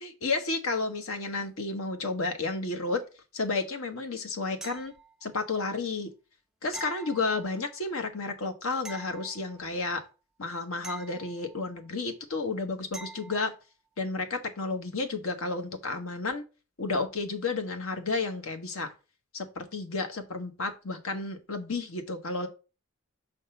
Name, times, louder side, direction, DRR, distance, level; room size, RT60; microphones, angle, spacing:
voice 1, 0.0-3.0 3.3-4.9 5.2-6.1 6.6-10.0 10.4-13.5 14.0-16.4 16.8-18.9 19.3-22.5, left 3 dB, 75° left, 6 dB, 1.1 m, -32 dB
sound 1, 4.6-5.4 6.7-7.8 8.8-9.9 10.8-11.9 12.9-13.5 16.3-16.4, right 3 dB, 5° right, 0.3 m, -45 dB
5.3 x 3.6 x 5.6 m, 0.32 s
head